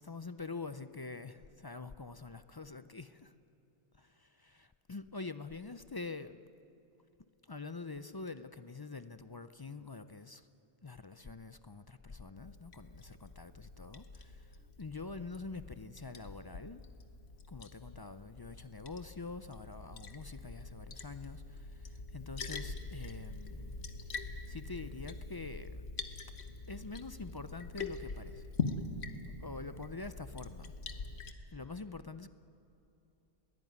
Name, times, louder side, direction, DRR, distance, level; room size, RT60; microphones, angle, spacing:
voice 1, 0.0-3.3 4.5-6.4 7.4-10.5 10.8-16.8 17.5-24.1 24.5-25.9 26.7-28.5 29.4-30.7 31.5-32.3, left 3 dB, 30° left, 12 dB, 0.4 m, -45 dB
Liquid, 12.4-31.3, left 4 dB, 85° left, 1.5 m, -44 dB
22.0 x 17.5 x 9.4 m, 2.9 s
omnidirectional pair, 1.1 m